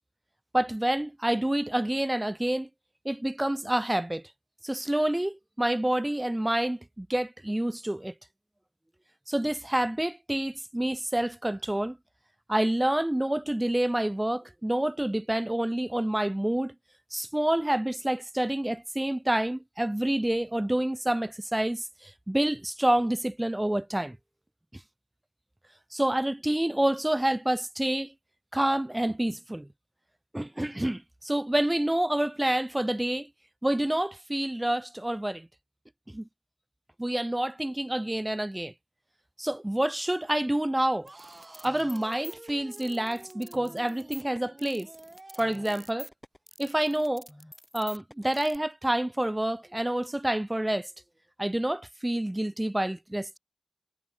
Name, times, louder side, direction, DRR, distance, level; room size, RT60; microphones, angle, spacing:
voice 1, 0.5-2.7 3.0-4.2 4.6-8.1 9.3-12.0 12.5-16.7 17.1-24.1 25.9-28.1 28.5-29.7 30.3-33.3 33.6-35.5 36.1-36.2 37.0-38.7 39.4-41.1 41.6-44.9 45.4-46.1 46.6-47.3 47.7-50.9 51.4-53.4, right 1 dB, 20° right, 1.6 m, -28 dB
sound 1, 41.0-46.0, right 2 dB, 40° right, 6.7 m, -49 dB
sound 2, 41.1-48.6, equal, 10° left, 3.7 m, -47 dB
wide cardioid pair, 55°, 0 cm